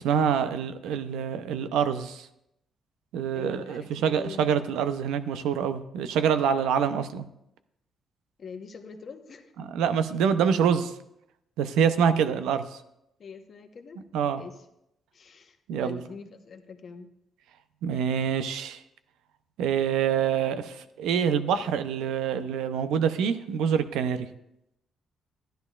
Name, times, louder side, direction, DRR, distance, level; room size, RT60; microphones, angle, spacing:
voice 1, 0.0-2.3 3.1-7.2 9.6-10.9 11.6-12.6 14.1-14.4 15.7-16.0 17.8-18.8 19.6-24.3, right 7 dB, 90° right, 10 dB, 0.6 m, -26 dB
voice 2, 3.3-4.5 8.4-9.5 13.2-14.0 14.4-14.5 15.1-17.1, left 5 dB, 50° left, 6 dB, 1.0 m, -43 dB
13.0 x 10.5 x 2.4 m, 0.81 s
cardioid pair, 90°, 0 cm